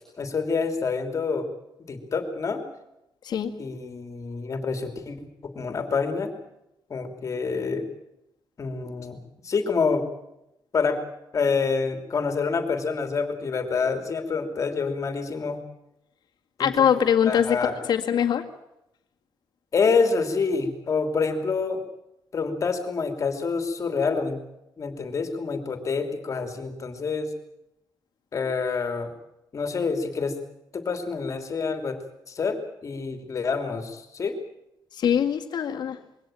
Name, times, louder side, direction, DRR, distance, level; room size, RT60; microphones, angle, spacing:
voice 1, 0.2-1.5 1.8-2.6 3.6-6.3 6.9-7.8 8.6-9.2 9.4-10.1 10.7-11.0 11.3-15.6 16.6-17.8 19.7-21.8 22.3-24.4 24.8-27.3 28.3-29.1 29.5-30.3 30.7-32.0 32.3-34.3, left 4 dB, 40° left, 7 dB, 3.0 m, -27 dB
voice 2, 16.6-17.6 17.9-18.4 35.0-36.0, left 8 dB, 65° left, 4 dB, 2.0 m, -22 dB
22.5 x 17.0 x 8.9 m, 0.86 s
cardioid pair, 125°, 8 cm